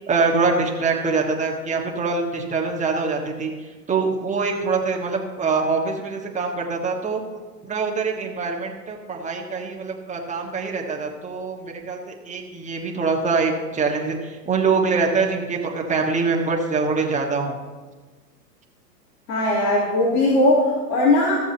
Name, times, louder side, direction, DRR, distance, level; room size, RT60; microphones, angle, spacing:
voice 1, 0.1-3.5 3.9-7.2 7.6-17.6, right 4 dB, 15° right, 0 dB, 1.4 m, -24 dB
voice 2, 19.3-21.4, left 2 dB, 65° left, -6 dB, 3.1 m, -19 dB
16.5 x 7.0 x 2.8 m, 1.3 s
hypercardioid pair, 115°, 50 cm